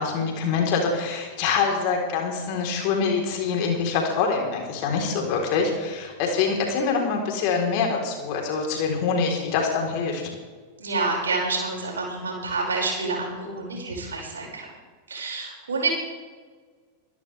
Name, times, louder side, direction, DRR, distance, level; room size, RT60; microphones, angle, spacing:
voice 1, 0.0-10.2, left 5 dB, 45° left, 1 dB, 3.7 m, -25 dB
voice 2, 10.8-14.7 15.1-16.0, right 3 dB, 70° right, -2 dB, 5.5 m, -28 dB
24.5 x 12.0 x 3.4 m, 1.5 s
figure-of-eight pair, 90°, 0 cm